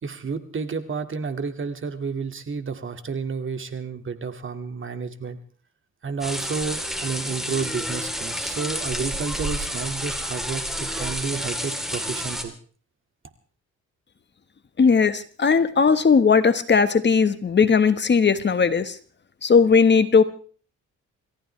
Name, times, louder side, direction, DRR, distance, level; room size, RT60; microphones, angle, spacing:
voice 1, 0.0-5.4 6.0-12.5, right 5 dB, 40° right, 8 dB, 2.2 m, -31 dB
sound 1, 6.2-12.4, equal, ahead, 3.5 m, -30 dB
voice 2, 14.8-18.9 19.4-20.2, left 5 dB, 35° left, 11 dB, 1.5 m, -18 dB
28.5 x 15.0 x 3.4 m, 0.42 s
cardioid pair, 90°, 30 cm